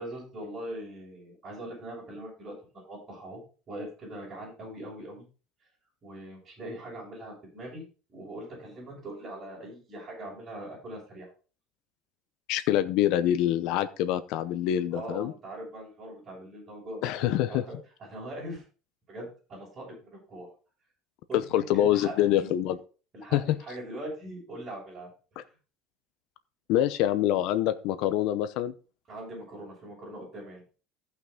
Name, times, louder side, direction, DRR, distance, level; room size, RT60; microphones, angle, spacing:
voice 1, 0.0-3.4 3.7-5.3 6.0-7.8 8.1-11.3 14.9-18.6 19.1-20.5 21.3-22.5 23.1-25.1 25.4-25.5 29.1-30.6, right 1 dB, 25° right, -5 dB, 6.3 m, -41 dB
voice 2, 12.5-15.3 17.0-17.6 21.3-22.8 23.3-23.6 26.7-28.7, left 12 dB, 65° left, 11 dB, 0.8 m, -25 dB
14.5 x 6.0 x 3.8 m, 0.36 s
cardioid pair, 160°, 0 cm